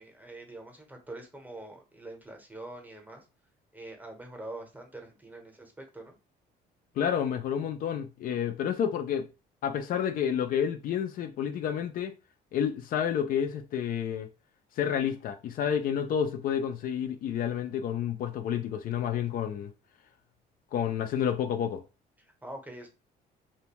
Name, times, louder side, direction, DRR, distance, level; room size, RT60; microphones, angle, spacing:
voice 1, 0.0-3.3 3.7-6.2 22.2-22.9, right 2 dB, 10° right, 0.8 m, -44 dB
voice 2, 7.0-9.3 9.6-12.1 12.5-14.3 14.8-19.7 20.7-21.8, left 8 dB, 55° left, 0.4 m, -30 dB
2.6 x 2.2 x 2.9 m
cardioid pair, 110°, 17 cm